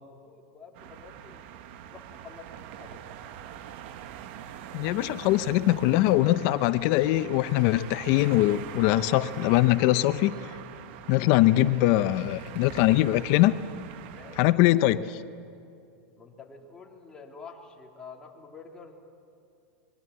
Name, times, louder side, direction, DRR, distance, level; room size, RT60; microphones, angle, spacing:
voice 1, 0.1-1.4 1.8-2.5 2.8-3.0 14.1-14.5 16.2-19.0, left 5 dB, 10° left, -2 dB, 3.3 m, -48 dB
sound 1, 0.7-14.5, right 10 dB, 55° right, 1.3 m, -43 dB
voice 2, 4.7-10.3 11.1-13.5 14.4-15.2, left 16 dB, 50° left, 13 dB, 0.7 m, -22 dB
23.0 x 22.0 x 8.8 m, 2.5 s
supercardioid pair, 145°, 7 cm